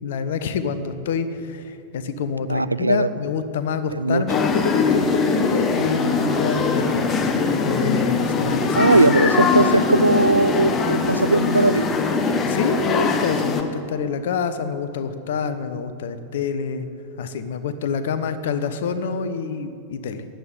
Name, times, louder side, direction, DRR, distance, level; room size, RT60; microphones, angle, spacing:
voice 1, 0.0-7.0 7.6-8.9 12.5-16.9 17.2-20.3, left 6 dB, 55° left, 11 dB, 1.0 m, -27 dB
voice 2, 2.5-3.1 3.9-4.2 8.8-11.9, right 2 dB, 85° right, 16 dB, 0.4 m, -19 dB
sound 1, 4.3-13.6, left 4 dB, 25° left, 1.3 m, -21 dB
14.0 x 9.2 x 9.4 m, 2.6 s
figure-of-eight pair, 90°, 0 cm